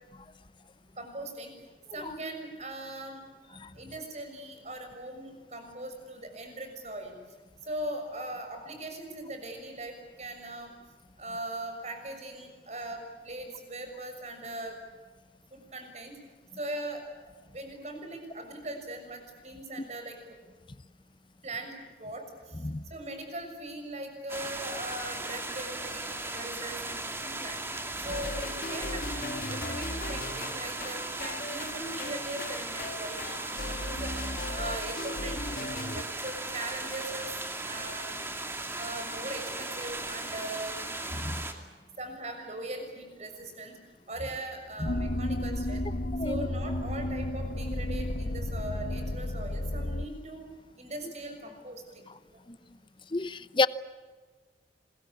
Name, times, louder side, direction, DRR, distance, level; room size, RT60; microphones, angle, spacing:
voice 1, 1.0-1.5 1.9-7.2 7.6-10.7 11.2-14.8 15.5-16.2 16.5-17.0 17.5-20.2 21.4-27.6 28.0-34.1 34.5-37.3 37.6-38.2 38.8-40.8 42.0-43.8 44.1-45.9 46.2-50.5 50.8-52.4, right 1 dB, 40° right, 5 dB, 6.6 m, -40 dB
sound 1, 24.3-41.5, right 2 dB, 15° right, 2.6 m, -37 dB
sound 2, 28.1-36.0, left 2 dB, 50° left, 1.5 m, -38 dB
sound 3, 44.8-50.1, left 1 dB, 75° left, 1.3 m, -32 dB
voice 2, 53.1-53.7, left 3 dB, 25° left, 15 dB, 0.8 m, -28 dB
27.5 x 22.5 x 8.5 m, 1.3 s
head